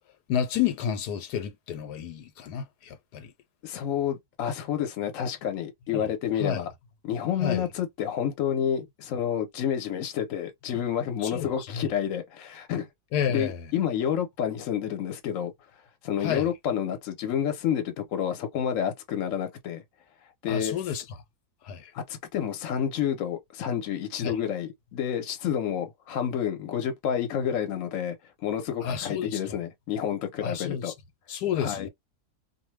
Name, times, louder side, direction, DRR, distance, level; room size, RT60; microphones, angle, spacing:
voice 1, 0.3-3.3 5.9-6.0 6.4-6.6 7.4-7.7 11.2-11.5 11.7-11.8 13.1-13.6 16.2-16.5 20.5-21.0 21.6-21.9 24.2-24.3 28.8-29.4 30.4-30.9 31.3-31.9, left 8 dB, 85° left, 1.2 m, -30 dB
voice 2, 3.6-6.7 7.0-12.9 13.3-15.5 16.0-19.8 20.4-20.7 21.9-28.2 28.4-30.9 31.6-31.9, left 9 dB, 60° left, 1.0 m, -29 dB
2.6 x 2.1 x 3.1 m
omnidirectional pair, 1.7 m